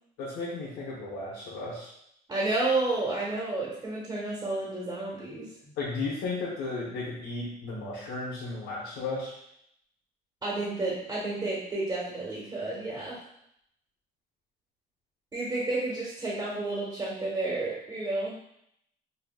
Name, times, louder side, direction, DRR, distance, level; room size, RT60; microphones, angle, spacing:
voice 1, 0.2-1.9 5.8-9.4, left 3 dB, 85° left, -7 dB, 1.0 m, -34 dB
voice 2, 2.3-5.7 10.4-13.2 15.3-18.4, right 2 dB, 25° right, -6 dB, 1.4 m, -31 dB
5.5 x 2.6 x 2.3 m, 0.74 s
cardioid pair, 110°, 17 cm